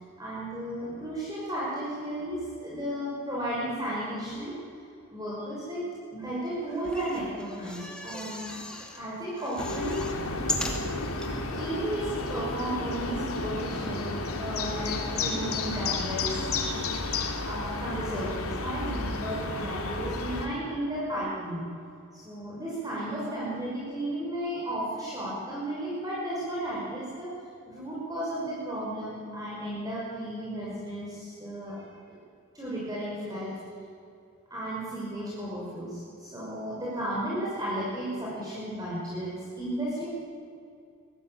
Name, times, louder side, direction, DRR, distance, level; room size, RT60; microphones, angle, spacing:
voice 1, 0.2-4.6 5.1-5.8 6.1-8.7 8.9-10.5 10.8-11.0 11.2-16.5 17.4-21.7 22.1-27.3 27.7-32.2 32.5-33.6 34.5-40.1, right 1 dB, 15° right, -7 dB, 5.7 m, -34 dB
sound 1, 6.8-9.0 9.4-11.3 11.9-12.0 12.2-12.3, left 1 dB, 5° left, 2.6 m, -37 dB
sound 2, 9.6-20.5, left 3 dB, 85° left, 3.0 m, -32 dB
24.5 x 18.5 x 9.0 m, 2.4 s
head